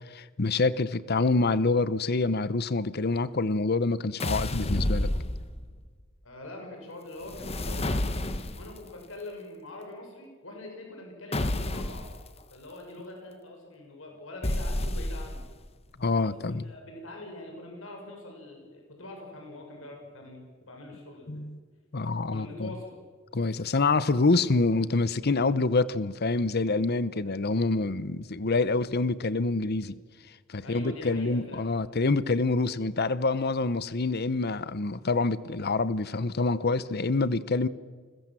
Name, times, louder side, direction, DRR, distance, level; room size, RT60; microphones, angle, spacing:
voice 1, 0.1-5.1 16.0-16.6 21.3-21.6 21.9-22.7 23.3-30.0 30.5-37.7, left 3 dB, 50° left, 0.8 m, -26 dB
sound 1, 4.2-5.8 7.2-8.8 11.3-12.2 14.4-15.5, left 1 dB, 30° left, 1.2 m, -30 dB
voice 2, 6.2-8.3 8.5-12.1 12.5-15.4 16.2-21.4 22.3-22.9 30.6-31.6, left 1 dB, 70° left, 6.6 m, -43 dB
29.5 x 21.5 x 7.6 m
head